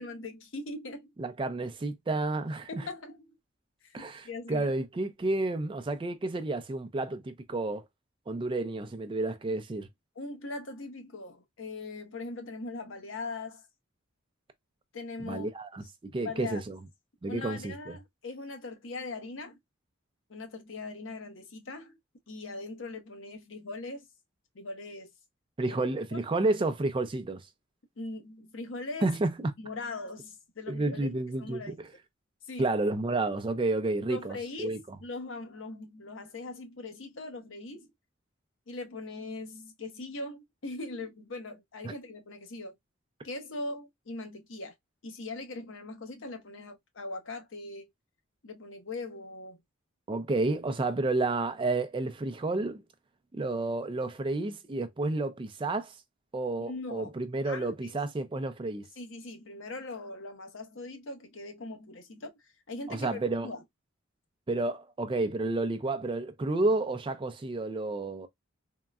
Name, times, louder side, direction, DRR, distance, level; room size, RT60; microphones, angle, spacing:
voice 1, 0.0-1.1 2.7-3.3 3.8-4.7 10.2-13.7 14.9-15.5 16.2-16.6 17.3-19.6 20.3-22.0 22.3-24.1 24.5-25.1 25.7-25.8 26.1-26.2 28.0-29.1 29.6-31.7 32.5-32.7 34.1-37.9 38.7-42.7 43.2-44.7 45.0-47.9 48.4-49.6 56.7-57.1 57.4-57.9 59.0-62.3 62.7-63.6, left 2 dB, 70° left, 0.8 m, -40 dB
voice 2, 1.2-2.8 3.9-7.8 8.3-9.9 15.2-16.8 17.2-18.0 25.6-27.4 29.0-29.5 30.7-31.7 32.6-35.0 41.8-41.9 50.1-52.8 53.3-55.9 56.3-58.9 62.9-63.5 64.5-68.3, right 2 dB, 25° right, 0.4 m, -31 dB
3.7 x 2.1 x 2.3 m
head